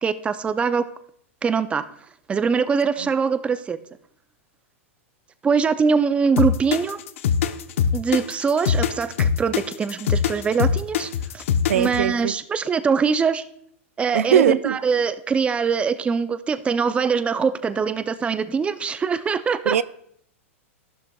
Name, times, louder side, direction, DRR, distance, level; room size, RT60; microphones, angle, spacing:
voice 1, 0.0-0.8 1.4-1.8 2.3-3.8 5.4-7.0 7.9-11.4 11.7-13.4 14.0-19.8, right 5 dB, 15° right, 0.6 m, -23 dB
sound 1, 6.4-12.0, left 7 dB, 70° left, 0.8 m, -22 dB
voice 2, 11.7-12.3 14.1-14.8 19.7-19.8, right 9 dB, 80° right, 0.4 m, -20 dB
14.0 x 12.0 x 2.4 m
hypercardioid pair, 115°, 7 cm